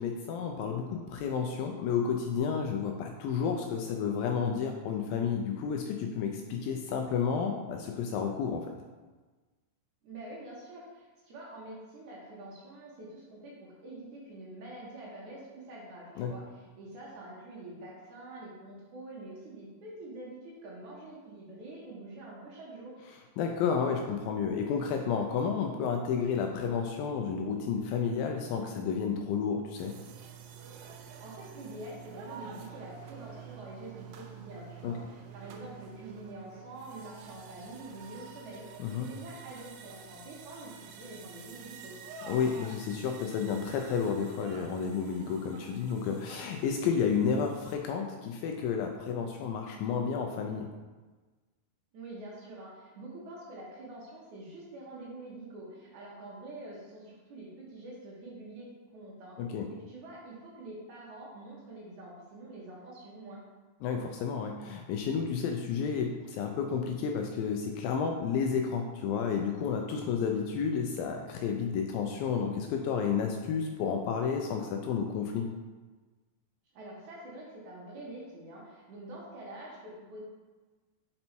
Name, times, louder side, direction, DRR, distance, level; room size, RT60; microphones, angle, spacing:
voice 1, 0.0-8.7 16.2-16.3 23.4-29.9 34.8-34.9 38.8-39.1 42.3-50.7 59.4-59.7 63.8-75.5, left 6 dB, 85° left, 3 dB, 2.0 m, -31 dB
voice 2, 10.0-23.0 31.2-42.0 51.9-58.7 58.9-59.4 59.7-63.4 76.7-80.2, right 2 dB, 65° right, -5 dB, 2.2 m, -46 dB
sound 1, 29.8-47.8, right 7 dB, 80° right, 2.3 m, -49 dB
5.3 x 5.3 x 4.4 m, 1.3 s
omnidirectional pair, 4.6 m